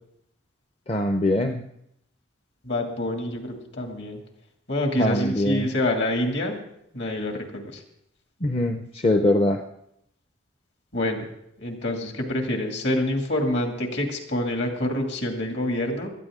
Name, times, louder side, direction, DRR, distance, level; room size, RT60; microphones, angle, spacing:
voice 1, 0.9-1.6 5.0-5.7 8.4-9.6, left 1 dB, 30° left, 5 dB, 0.6 m, -22 dB
voice 2, 2.6-4.2 4.7-6.6 6.9-7.8 10.9-11.3 11.6-16.1, left 1 dB, 65° left, 3 dB, 2.4 m, -26 dB
18.0 x 13.0 x 3.7 m, 0.75 s
head